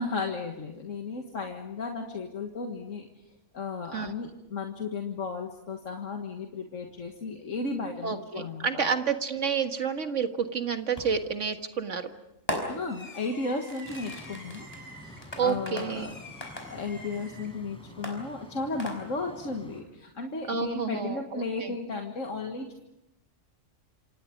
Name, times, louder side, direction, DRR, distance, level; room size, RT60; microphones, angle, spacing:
voice 1, 0.0-3.1 3.5-8.9 12.7-14.7 15.0-16.2 16.6-22.8, left 3 dB, 75° left, 3 dB, 2.1 m, -34 dB
voice 2, 8.0-12.1 15.4-16.1 20.5-21.7, right 6 dB, 65° right, 6 dB, 2.0 m, -29 dB
Fireworks, 11.0-11.4 12.5-17.5 18.0-19.4, left 1 dB, 30° left, 5.0 m, -39 dB
sound 1, 13.8-19.8, equal, 5° left, 4.6 m, -49 dB
27.5 x 27.0 x 5.3 m, 0.87 s
omnidirectional pair, 1.3 m